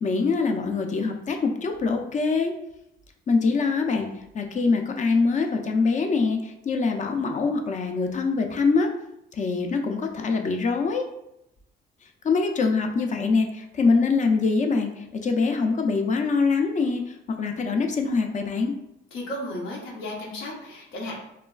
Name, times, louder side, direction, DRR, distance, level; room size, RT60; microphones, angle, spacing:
voice 1, 0.0-2.5 3.3-4.1 4.3-8.9 9.3-11.0 12.2-18.7, left 4 dB, 40° left, 4 dB, 0.4 m, -24 dB
voice 2, 19.1-21.1, left 1 dB, 85° left, -2 dB, 0.8 m, -34 dB
3.1 x 2.2 x 2.3 m, 0.82 s
cardioid pair, 90°, 20 cm